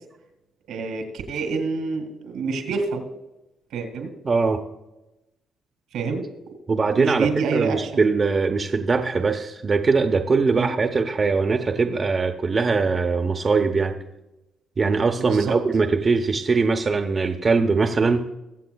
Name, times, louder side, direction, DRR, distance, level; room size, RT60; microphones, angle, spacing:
voice 1, 0.7-3.0 3.7-4.1 5.9-6.2 6.9-7.8 10.5-10.7 15.3-15.5, right 4 dB, 85° right, 5 dB, 2.5 m, -27 dB
voice 2, 4.2-4.6 6.7-13.9 14.8-18.2, right 4 dB, 35° right, 3 dB, 0.9 m, -21 dB
22.5 x 7.5 x 2.3 m, 0.94 s
cardioid pair, 90°, 0 cm